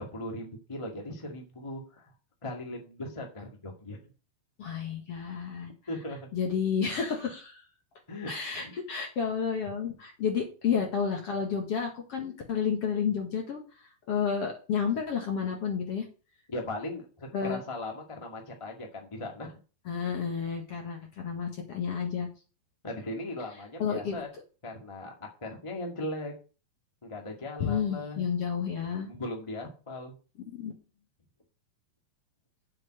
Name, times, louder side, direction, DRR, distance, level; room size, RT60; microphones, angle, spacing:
voice 1, 0.0-2.1 2.4-4.1 5.9-6.3 8.1-8.3 8.6-8.7 16.5-19.6 22.8-24.3 24.6-26.3 27.0-28.2 29.0-30.1, left 1 dB, 15° left, 0 dB, 1.1 m, -38 dB
voice 2, 4.6-5.7 6.3-7.6 8.3-13.6 14.1-16.1 17.3-17.6 19.9-22.3 23.8-24.2 27.6-29.1 30.5-30.7, left 6 dB, 50° left, 2 dB, 2.1 m, -31 dB
7.7 x 5.8 x 7.8 m, 0.35 s
omnidirectional pair, 4.3 m